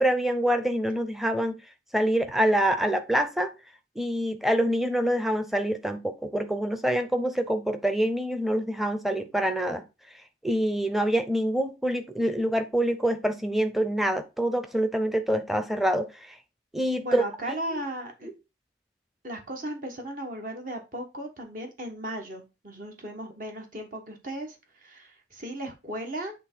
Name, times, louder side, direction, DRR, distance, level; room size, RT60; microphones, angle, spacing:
voice 1, 0.0-1.5 1.9-3.5 4.0-9.8 10.4-16.1 16.7-17.2 17.7-17.8, right 1 dB, ahead, 0.7 m, -26 dB
voice 2, 17.0-18.3 19.2-26.3, right 1 dB, 45° right, 1.5 m, -36 dB
8.3 x 3.3 x 4.6 m
head